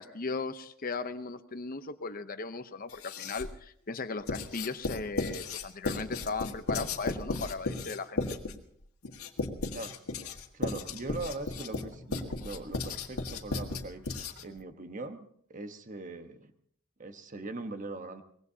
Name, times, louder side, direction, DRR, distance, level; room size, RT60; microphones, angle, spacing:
voice 1, 0.0-8.3, left 4 dB, 40° left, 9 dB, 0.8 m, -37 dB
Writing, 2.9-3.6 4.3-14.6, left 3 dB, 80° left, 1.7 m, -35 dB
voice 2, 10.5-16.5 17.0-18.2, right 2 dB, 35° right, 7 dB, 1.2 m, -41 dB
23.5 x 19.5 x 2.8 m, 0.65 s
head